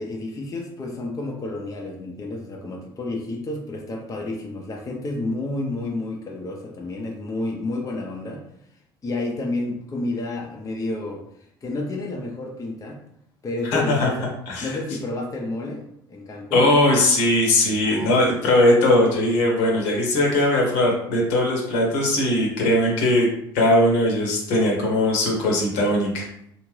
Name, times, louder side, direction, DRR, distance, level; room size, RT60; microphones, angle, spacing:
voice 1, 0.0-8.4 9.0-11.2 11.6-13.0 13.4-14.3 14.6-16.7 17.8-18.2, left 2 dB, 30° left, -1 dB, 0.7 m, -30 dB
voice 2, 13.7-14.1 14.5-14.8 16.5-23.3 23.5-26.3, left 1 dB, 70° left, -1 dB, 1.0 m, -19 dB
2.5 x 2.5 x 3.2 m, 0.73 s
hypercardioid pair, 65°, 12 cm